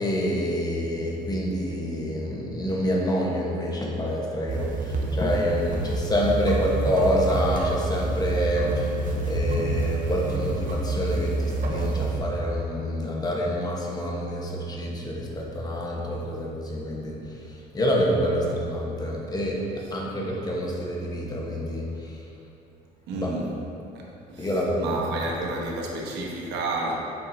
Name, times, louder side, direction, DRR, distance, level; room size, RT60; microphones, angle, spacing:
voice 1, 0.0-8.9 9.3-17.2 17.7-22.1 23.1-23.4 24.4-24.9, equal, 25° left, -2 dB, 1.1 m, -27 dB
sound 1, 4.5-12.2, right 2 dB, 55° right, 0.8 m, -28 dB
voice 2, 23.1-23.5 23.9-26.9, right 2 dB, 90° right, -2 dB, 1.1 m, -31 dB
7.5 x 5.3 x 2.7 m, 2.8 s
cardioid pair, 110°, 17 cm